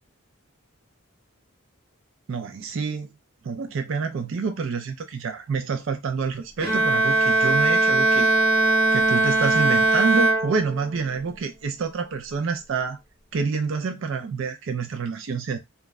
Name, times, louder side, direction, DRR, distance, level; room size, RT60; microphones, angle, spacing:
voice 1, 2.3-3.1 3.4-8.3 8.6-13.0 13.3-15.6, right 5 dB, 65° right, 0.4 m, -27 dB
Bowed string instrument, 6.6-11.1, right 2 dB, 45° right, 0.8 m, -20 dB
2.2 x 2.0 x 3.3 m
head